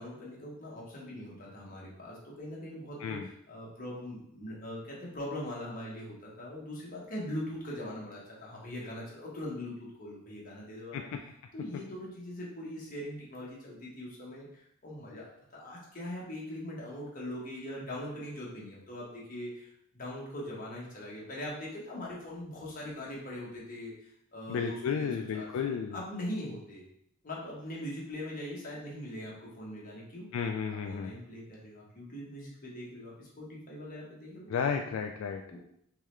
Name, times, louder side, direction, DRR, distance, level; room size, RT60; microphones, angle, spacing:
voice 1, 0.0-11.1 11.5-26.8 27.2-30.3 30.7-34.7 35.5-35.6, left 1 dB, 40° left, -4 dB, 1.2 m, -41 dB
voice 2, 24.5-26.0 30.3-31.1 34.5-35.4, left 6 dB, 80° left, 4 dB, 0.3 m, -32 dB
3.6 x 3.2 x 3.1 m, 0.72 s
head